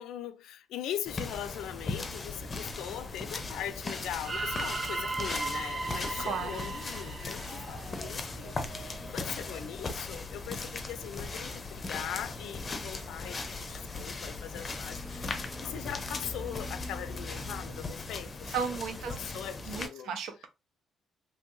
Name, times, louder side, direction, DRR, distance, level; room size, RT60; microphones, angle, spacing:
voice 1, 0.0-18.8 19.1-20.1, left 10 dB, 85° left, 0.4 m, -40 dB
sound 1, 1.0-19.9, left 3 dB, 35° left, 0.6 m, -39 dB
sound 2, 1.4-17.9, left 1 dB, 15° right, 1.5 m, -48 dB
sound 3, 4.2-8.3, right 3 dB, 40° right, 0.7 m, -36 dB
voice 2, 6.2-6.6 18.5-19.1 19.7-20.5, right 6 dB, 80° right, 0.7 m, -34 dB
3.1 x 2.7 x 2.5 m
cardioid pair, 90°, 0 cm